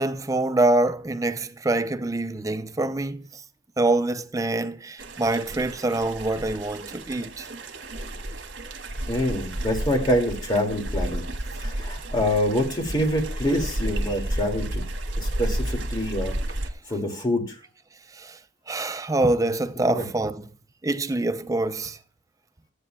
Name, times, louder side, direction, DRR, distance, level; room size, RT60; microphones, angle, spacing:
voice 1, 0.0-3.4 3.8-7.5 18.1-18.4 18.7-20.5 20.8-22.0, right 2 dB, 15° right, 0.4 m, -25 dB
sound 1, 5.0-16.7, right 1 dB, 65° right, 1.5 m, -32 dB
voice 2, 9.1-11.2 11.6-14.9 15.2-16.4 16.9-17.6 19.8-20.1, left 1 dB, 20° left, 2.3 m, -26 dB
14.5 x 9.6 x 2.3 m
head